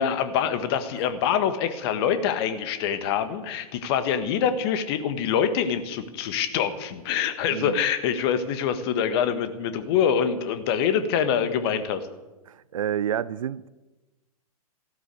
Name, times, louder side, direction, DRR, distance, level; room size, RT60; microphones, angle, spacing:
voice 1, 0.0-12.0, left 8 dB, 40° left, 10 dB, 1.6 m, -25 dB
voice 2, 7.5-7.8 12.5-13.7, right 10 dB, 60° right, 19 dB, 0.6 m, -29 dB
15.0 x 12.0 x 8.0 m, 1.1 s
figure-of-eight pair, 110°, 19 cm